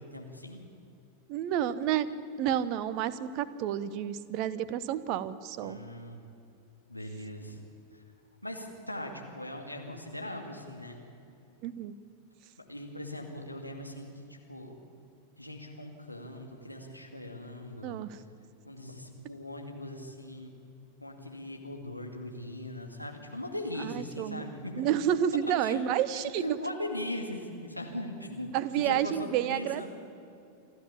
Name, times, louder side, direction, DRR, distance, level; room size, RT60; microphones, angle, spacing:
voice 1, 0.1-0.6 5.6-6.2 6.9-7.6 7.9-8.0 8.4-11.0 12.7-14.7 15.4-18.0 18.6-20.5 21.0-24.8 25.6-25.8 26.4-29.9, left 1 dB, 90° left, 2 dB, 2.4 m, -40 dB
voice 2, 1.3-2.1 2.4-5.8 11.6-11.9 17.8-18.2 23.8-24.5 24.8-26.6 28.5-29.9, right 10 dB, 40° right, 14 dB, 1.0 m, -30 dB
28.0 x 12.5 x 8.6 m, 2.5 s
figure-of-eight pair, 90°, 0 cm